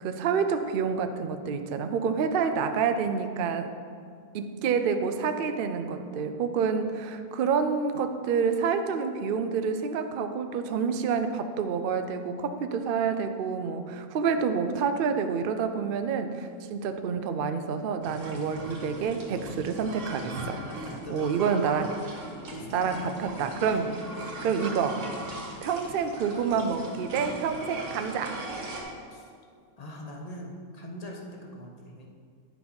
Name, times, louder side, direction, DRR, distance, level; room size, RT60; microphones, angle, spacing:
voice 1, 0.0-3.7 4.3-20.6 21.1-21.9 22.7-23.8 24.3-25.0 25.6-28.4, right 6 dB, 80° right, 7 dB, 0.4 m, -28 dB
sound 1, 18.0-28.8, right 1 dB, 65° right, 1.6 m, -39 dB
voice 2, 20.5-21.5 22.5-23.1 23.7-24.1 27.1-27.3 29.1-29.3 29.8-32.1, left 1 dB, 30° left, 1 dB, 0.8 m, -42 dB
9.1 x 5.5 x 4.3 m, 2.1 s
omnidirectional pair, 1.6 m